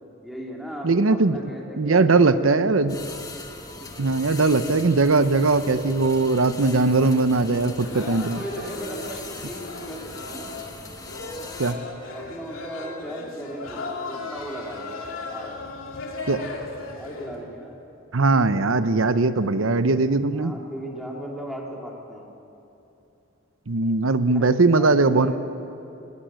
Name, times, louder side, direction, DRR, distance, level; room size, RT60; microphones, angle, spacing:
voice 1, 0.2-2.9 3.8-4.1 7.9-10.5 12.1-15.5 16.9-17.8 20.3-22.3 24.3-25.4, equal, ahead, -2 dB, 3.1 m, -37 dB
voice 2, 0.8-1.4 1.8-3.0 4.0-8.4 11.6-11.8 16.3-16.4 18.1-20.5 23.7-25.4, right 3 dB, 80° right, 12 dB, 0.9 m, -20 dB
sound 1, 2.9-11.8, left 3 dB, 20° left, 1.6 m, -40 dB
sound 2, 7.8-17.5, left 3 dB, 85° left, 2.7 m, -37 dB
19.5 x 19.0 x 7.8 m, 2.9 s
head